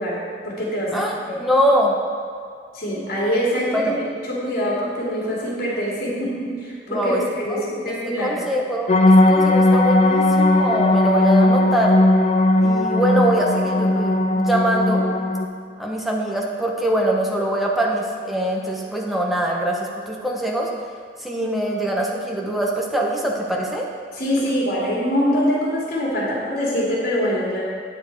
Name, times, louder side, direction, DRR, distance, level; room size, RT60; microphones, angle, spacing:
voice 1, 0.0-1.4 2.7-4.0 4.2-8.4 24.1-27.6, equal, 60° left, -5 dB, 2.7 m, -24 dB
voice 2, 0.9-2.0 3.7-4.0 6.9-7.2 7.5-7.7 8.2-8.9 9.3-12.0 12.6-15.0 15.8-20.7 21.2-23.9, right 1 dB, ahead, -2 dB, 1.1 m, -23 dB
sound 1, 8.9-15.5, left 1 dB, 40° left, 0.5 m, -17 dB
9.2 x 7.4 x 4.7 m, 2.2 s
head